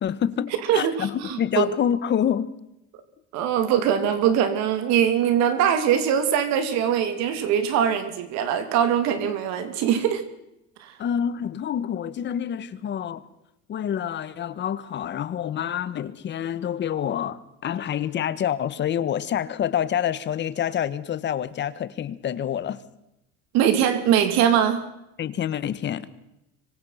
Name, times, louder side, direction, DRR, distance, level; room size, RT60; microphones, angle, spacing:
voice 1, 0.0-2.5 11.0-13.2 13.7-22.8 25.2-26.2, left 9 dB, 40° left, 1.6 m, -27 dB
voice 2, 0.7-1.7 3.3-10.2 10.8-11.0 23.5-24.8, right 9 dB, 70° right, 3.1 m, -22 dB
25.5 x 25.0 x 5.9 m
cardioid pair, 130°, 29 cm